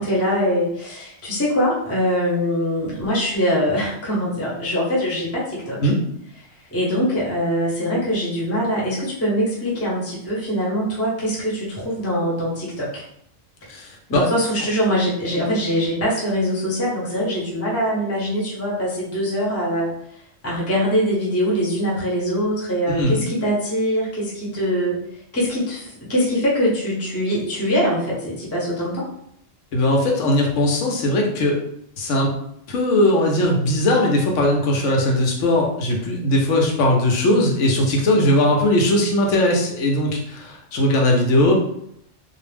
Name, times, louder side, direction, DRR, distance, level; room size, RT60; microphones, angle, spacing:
voice 1, 0.0-5.8 6.7-13.0 14.1-19.9 20.4-29.1, equal, 15° left, -5 dB, 0.6 m, -23 dB
voice 2, 13.7-14.2 22.9-23.2 29.7-31.6 32.0-32.3 32.7-41.5, left 1 dB, 75° left, 0 dB, 0.9 m, -19 dB
2.4 x 2.0 x 3.2 m, 0.72 s
omnidirectional pair, 1.3 m